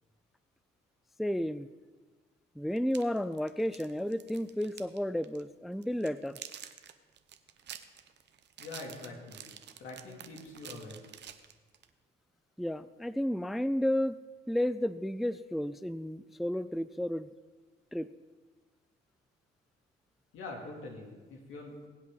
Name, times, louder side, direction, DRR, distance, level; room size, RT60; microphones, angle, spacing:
voice 1, 1.2-1.7 2.6-6.4 12.6-14.2 14.5-17.3 17.9-18.1, equal, ahead, 14 dB, 0.3 m, -32 dB
sound 1, 2.8-5.0 5.2-5.4 5.8-11.9, right 9 dB, 60° right, 0.9 m, -48 dB
voice 2, 8.6-9.5 9.8-11.0 20.3-21.9, left 2 dB, 80° left, -1 dB, 3.0 m, -44 dB
21.5 x 8.0 x 4.0 m, 1.3 s
cardioid pair, 90°, 20 cm